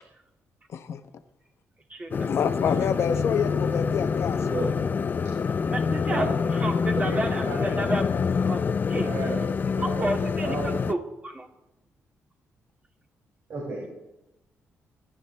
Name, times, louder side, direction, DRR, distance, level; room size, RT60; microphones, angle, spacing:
voice 1, 0.7-1.0 2.3-4.7, left 7 dB, 65° left, 9 dB, 0.9 m, -28 dB
voice 2, 1.9-2.3 5.7-8.0 8.5-9.1 9.8-11.5, right 1 dB, 25° right, 2 dB, 2.2 m, -31 dB
sound 1, 2.1-10.9, left 5 dB, 40° left, 0.5 m, -26 dB
voice 3, 6.0-6.4 7.0-7.8 9.0-9.4 9.7-10.1 10.4-10.7 13.5-13.9, right 3 dB, 65° right, -4 dB, 5.4 m, -32 dB
24.0 x 11.0 x 3.3 m, 0.93 s
cardioid pair, 110°, 5 cm